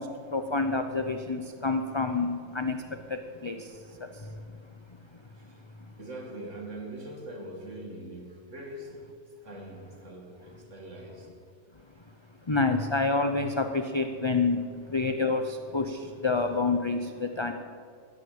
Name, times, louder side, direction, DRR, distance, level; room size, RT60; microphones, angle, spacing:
voice 1, 0.0-4.6 4.9-5.9 11.8-17.5, left 3 dB, 30° left, 7 dB, 0.6 m, -29 dB
voice 2, 6.0-9.2 9.4-11.3, right 1 dB, 80° right, 2 dB, 2.7 m, -42 dB
14.5 x 10.5 x 8.5 m, 2.3 s
omnidirectional pair, 1.2 m